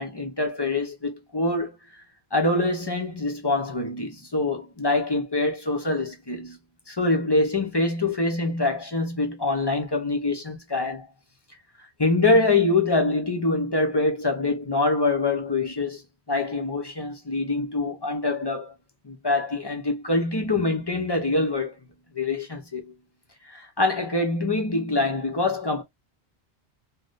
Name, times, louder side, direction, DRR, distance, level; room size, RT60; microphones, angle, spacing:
voice 1, 0.0-1.8 2.3-6.6 6.9-11.1 12.0-16.0 16.3-18.7 19.0-21.8 22.1-22.9 23.4-25.8, left 2 dB, 30° left, 0.6 m, -25 dB
3.5 x 2.2 x 2.5 m
omnidirectional pair, 1.1 m